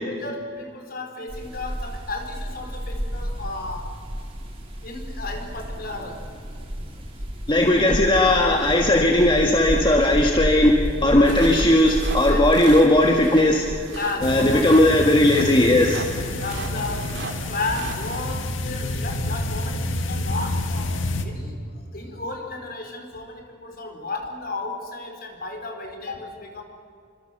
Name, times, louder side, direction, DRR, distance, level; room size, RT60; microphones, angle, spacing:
voice 1, 0.0-4.0 4.8-6.3 7.5-8.0 8.3-8.6 12.3-12.9 13.9-15.1 16.4-17.2 17.4-21.6 21.9-26.6, left 2 dB, 50° left, 4 dB, 4.7 m, -33 dB
sound 1, 1.3-14.6, equal, 30° right, 5.0 m, -31 dB
voice 2, 7.5-13.7 14.2-16.1, left 1 dB, 25° left, 1 dB, 1.8 m, -17 dB
sound 2, 11.2-18.2, right 3 dB, 65° right, 2.8 m, -38 dB
sound 3, 14.2-21.2, left 2 dB, 85° left, 1.9 m, -28 dB
28.0 x 25.5 x 7.0 m, 2.1 s
head